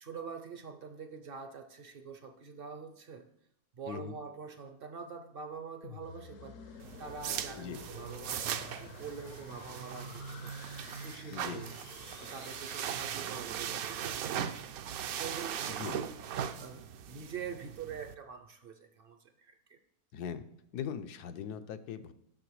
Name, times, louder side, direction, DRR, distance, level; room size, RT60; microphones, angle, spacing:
voice 1, 0.0-3.3 3.7-11.7 12.2-14.2 14.8-16.1 16.6-19.8, right 6 dB, 55° right, 8 dB, 0.6 m, -45 dB
sound 1, 5.8-13.7, left 7 dB, 65° left, 0.9 m, -51 dB
sound 2, 6.8-18.1, right 9 dB, 70° right, 1.0 m, -39 dB
voice 2, 11.3-11.6 15.7-16.0 20.1-20.5 20.7-22.1, left 7 dB, 85° left, 10 dB, 1.2 m, -40 dB
7.8 x 6.6 x 4.7 m, 0.74 s
omnidirectional pair, 1.7 m